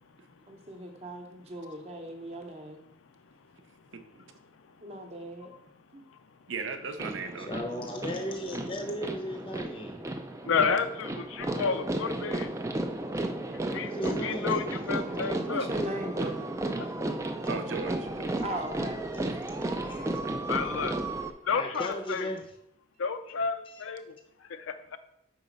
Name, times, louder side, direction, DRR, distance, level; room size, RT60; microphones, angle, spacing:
voice 1, 0.5-2.8 4.8-5.5 5.9-6.0 15.4-16.5 18.4-19.0, right 1 dB, 30° right, 4 dB, 0.8 m, -38 dB
voice 2, 3.9-4.2 6.5-7.5 17.5-18.4, right 4 dB, 70° right, 8 dB, 0.6 m, -37 dB
sound 1, 7.0-21.3, right 2 dB, 15° right, 0.3 m, -33 dB
voice 3, 7.5-9.9 13.8-14.6 19.9-20.0 21.5-22.4 23.7-23.8, left 1 dB, 25° left, 3 dB, 0.6 m, -36 dB
voice 4, 10.4-12.5 13.7-15.7 20.5-21.0 21.4-22.3 23.0-24.1 24.4-25.0, left 5 dB, 80° left, 8 dB, 0.5 m, -31 dB
5.5 x 3.9 x 5.1 m, 0.77 s
head